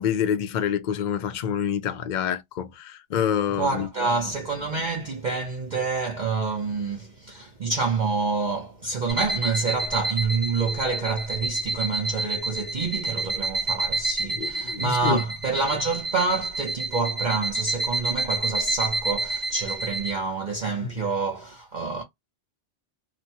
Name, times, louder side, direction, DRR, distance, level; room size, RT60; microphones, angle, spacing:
voice 1, 0.0-3.9 14.4-15.2 20.8-20.9, left 8 dB, 60° left, 0.5 m, -27 dB
voice 2, 3.5-22.0, right 4 dB, 45° right, 0.7 m, -27 dB
sound 1, 9.1-20.1, right 2 dB, 30° right, 1.0 m, -29 dB
3.0 x 2.1 x 2.6 m
omnidirectional pair, 1.2 m